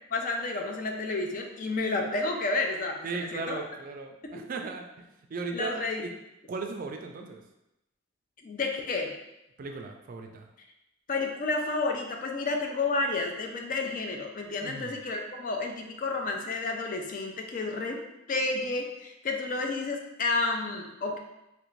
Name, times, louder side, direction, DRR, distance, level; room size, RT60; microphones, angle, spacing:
voice 1, 0.1-3.6 4.2-4.4 5.5-6.0 8.4-9.1 11.1-18.0 18.3-21.2, left 3 dB, 45° left, 3 dB, 0.4 m, -31 dB
voice 2, 3.0-5.8 6.0-6.1 6.5-7.4 9.6-10.5 14.6-15.0, right 4 dB, 45° right, 4 dB, 0.3 m, -37 dB
3.2 x 2.5 x 3.1 m, 0.90 s
head